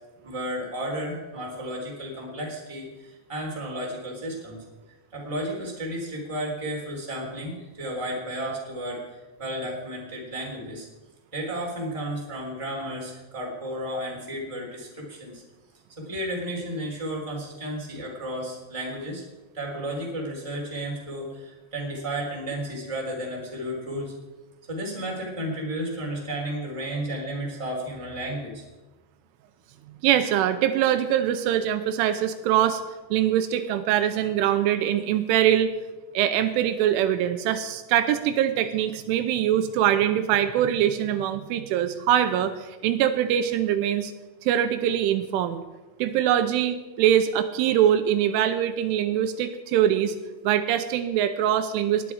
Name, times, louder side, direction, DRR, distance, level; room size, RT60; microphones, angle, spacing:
voice 1, 0.2-4.6 5.1-9.0 9.4-10.8 11.3-15.4 16.0-19.2 19.5-24.1 24.7-28.6, right 1 dB, 10° right, -2 dB, 2.8 m, -33 dB
voice 2, 30.0-32.8 33.1-35.7 36.1-44.1 44.4-45.6 46.0-50.2 50.4-52.1, right 10 dB, 85° right, 9 dB, 3.2 m, -23 dB
19.0 x 11.5 x 4.8 m, 1.2 s
omnidirectional pair, 5.7 m